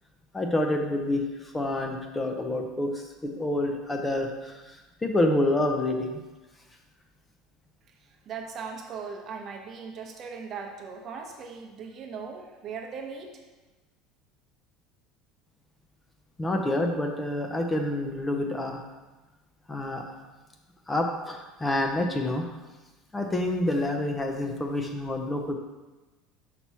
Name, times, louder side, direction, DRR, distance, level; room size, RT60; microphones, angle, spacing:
voice 1, 0.3-6.2 16.4-18.8 19.7-20.0 20.9-22.5 23.1-25.5, left 1 dB, 15° left, 3 dB, 0.6 m, -28 dB
voice 2, 8.0-13.4, right 5 dB, 45° right, 3 dB, 0.8 m, -39 dB
5.9 x 3.0 x 5.5 m, 1.2 s
supercardioid pair, 120°, 0 cm